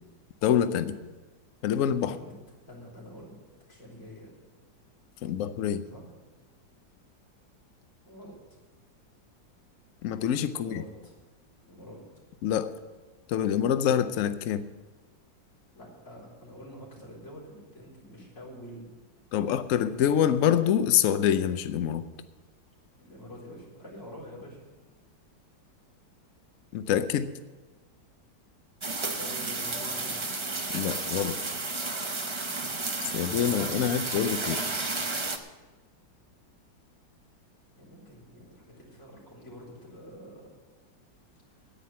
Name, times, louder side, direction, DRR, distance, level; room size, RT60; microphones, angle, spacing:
voice 1, 0.4-1.0 1.6-2.2 5.2-5.9 10.0-10.8 12.4-12.7 13.3-14.6 19.3-22.0 26.7-27.3 30.7-31.4 33.0-34.6, left 9 dB, 80° left, 12 dB, 0.7 m, -26 dB
voice 2, 2.0-2.3 2.7-3.3 3.7-4.3 5.9-6.0 8.0-8.4 10.5-11.2 11.6-12.0 15.7-18.9 23.0-24.6 29.1-30.2 37.7-40.6, equal, 35° left, -4 dB, 4.5 m, -46 dB
sound 1, 28.8-35.4, right 3 dB, 50° right, 0.3 m, -32 dB
10.0 x 9.3 x 8.6 m, 1.2 s
omnidirectional pair, 2.1 m